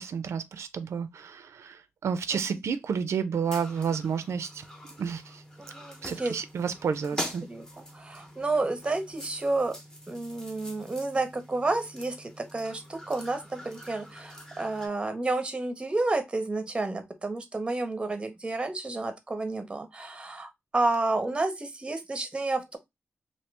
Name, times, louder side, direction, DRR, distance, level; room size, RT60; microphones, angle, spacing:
voice 1, 0.0-4.6 5.0-5.4 6.0-7.4, right 6 dB, 90° right, 0.4 m, -31 dB
sound 1, 3.4-14.9, equal, 15° left, 0.7 m, -44 dB
voice 2, 5.6-6.4 7.1-9.8 10.1-22.8, right 2 dB, 20° right, 0.6 m, -30 dB
2.9 x 2.6 x 3.2 m
wide cardioid pair, 170°, 5 cm